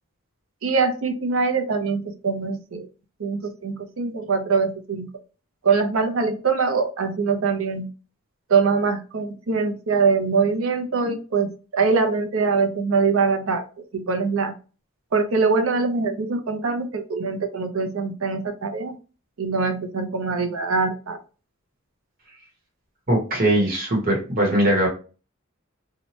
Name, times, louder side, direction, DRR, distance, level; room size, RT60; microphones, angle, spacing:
voice 1, 0.6-2.9 3.2-5.1 5.6-7.9 8.5-11.5 11.7-13.6 13.9-14.5 15.1-18.9 19.4-21.2, right 4 dB, 80° right, 6 dB, 0.6 m, -23 dB
voice 2, 23.1-24.9, right 1 dB, 45° right, -2 dB, 1.0 m, -20 dB
2.8 x 2.2 x 3.0 m, 0.35 s
head